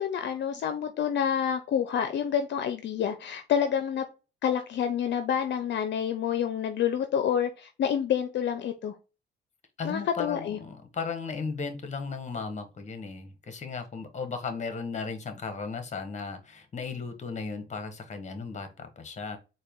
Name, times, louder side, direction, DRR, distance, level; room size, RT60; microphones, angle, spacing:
voice 1, 0.0-4.0 4.4-9.0 9.8-10.6, left 8 dB, 65° left, 8 dB, 0.6 m, -28 dB
voice 2, 9.8-19.4, left 4 dB, 35° left, 8 dB, 1.0 m, -36 dB
4.2 x 2.2 x 3.5 m, 0.30 s
cardioid pair, 90°, 20 cm